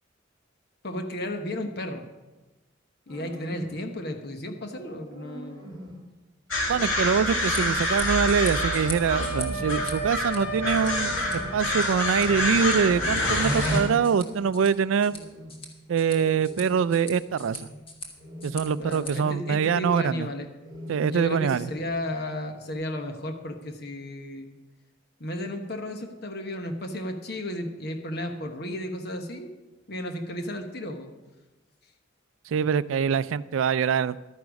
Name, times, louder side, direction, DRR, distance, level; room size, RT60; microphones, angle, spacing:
voice 1, 0.8-2.0 3.1-5.8 18.8-20.5 20.9-24.6 25.2-29.5 29.9-31.1, left 1 dB, 55° left, 5 dB, 1.2 m, -34 dB
sound 1, 3.1-3.9 4.7-6.0 6.7-8.0 8.5-9.9 10.4-11.7 12.1-13.2 13.6-14.7 15.0-15.6 16.1-17.0 17.3-17.8 18.2-18.9 19.3-20.2 20.6-21.4 21.7-22.3 22.6-22.7, equal, 25° right, 2.1 m, -43 dB
sound 2, 6.5-13.8, left 1 dB, 80° left, 2.4 m, -26 dB
voice 2, 6.7-11.1 11.5-15.2 15.9-17.7 18.4-20.3 20.9-21.7 32.5-34.3, right 6 dB, 80° right, 17 dB, 0.4 m, -24 dB
sound 3, 7.4-19.1, left 2 dB, 25° left, 1.4 m, -43 dB
12.0 x 9.6 x 5.2 m, 1.1 s
head